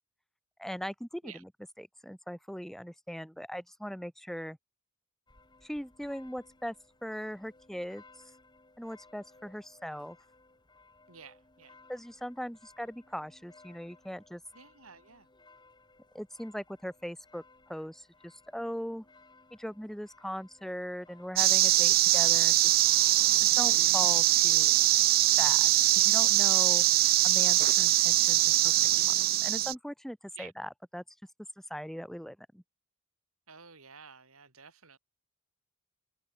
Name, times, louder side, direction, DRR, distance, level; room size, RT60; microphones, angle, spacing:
voice 1, 0.6-1.3 1.8-4.6 5.6-6.7 7.0-8.0 8.8-10.2 11.9-14.4 16.1-17.4 17.7-19.0 19.5-22.8 23.6-24.7 25.4-25.7 26.0-26.8 27.2-28.7 29.0-29.1 29.4-31.0 31.7-32.6, equal, ahead, 2.3 m, -39 dB
sound 1, 5.3-23.3, left 3 dB, 20° left, 7.6 m, -61 dB
voice 2, 11.1-11.8 14.5-15.3 30.3-30.5 33.5-35.0, right 6 dB, 75° right, 6.5 m, -52 dB
sound 2, 21.4-29.7, right 15 dB, 45° right, 0.4 m, -23 dB
head